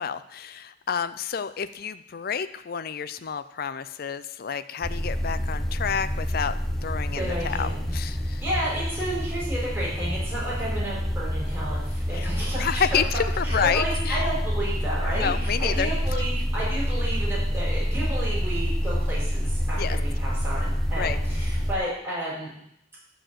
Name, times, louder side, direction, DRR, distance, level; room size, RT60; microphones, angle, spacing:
voice 1, 0.0-8.4 12.1-14.2 15.0-15.9 19.7-20.0 21.0-21.2, left 7 dB, 55° left, 13 dB, 0.5 m, -29 dB
sound 1, 4.8-21.8, equal, ahead, 0.8 m, -27 dB
voice 2, 7.1-7.9 8.4-13.0 13.4-22.5, right 1 dB, 15° right, -7 dB, 4.4 m, -32 dB
11.5 x 4.5 x 7.5 m, 0.75 s
head